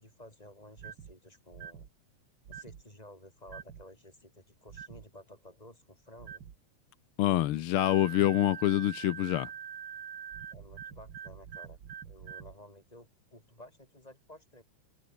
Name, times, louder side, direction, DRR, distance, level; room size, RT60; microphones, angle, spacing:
voice 1, 0.0-1.9 2.5-6.4 10.5-11.8 12.0-14.6, left 1 dB, 10° left, 7.0 m, -53 dB
sound 1, 0.8-1.1 1.5-1.9 2.4-2.8 3.5-3.8 4.7-5.0 6.2-6.5 7.8-12.5, right 8 dB, 45° right, 1.7 m, -44 dB
voice 2, 7.2-9.5, left 14 dB, 85° left, 1.2 m, -26 dB
open air
omnidirectional pair, 3.4 m